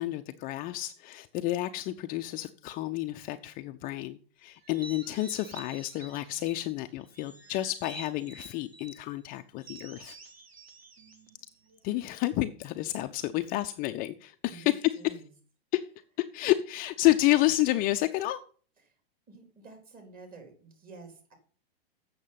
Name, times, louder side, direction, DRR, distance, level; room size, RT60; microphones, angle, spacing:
voice 1, 0.0-10.2 11.8-14.9 15.7-15.8 16.3-18.4, left 16 dB, 30° left, 0.5 m, -30 dB
sound 1, 4.6-6.7 7.1-9.0 9.6-12.1, right 3 dB, 85° right, 2.4 m, -49 dB
voice 2, 14.5-15.3 18.8-19.0 19.3-21.3, right 3 dB, 30° right, 3.9 m, -50 dB
8.2 x 6.5 x 5.7 m
hypercardioid pair, 120°, 30 cm